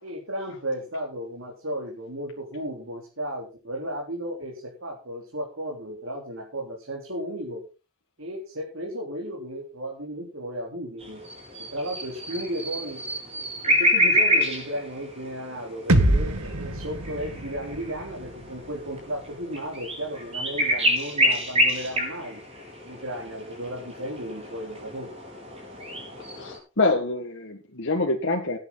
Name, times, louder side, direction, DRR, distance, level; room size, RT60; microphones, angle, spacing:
voice 1, 0.0-7.6 8.2-11.2 11.6-13.0 13.6-22.4 22.8-25.1, equal, 60° right, -1 dB, 3.9 m, -34 dB
sound 1, 11.0-26.6, equal, 25° right, 4.9 m, -28 dB
sound 2, 15.9-19.8, right 1 dB, 85° right, 1.9 m, -26 dB
voice 2, 26.3-28.6, left 2 dB, 55° left, 1 dB, 1.8 m, -26 dB
17.5 x 9.5 x 4.0 m, 0.32 s
head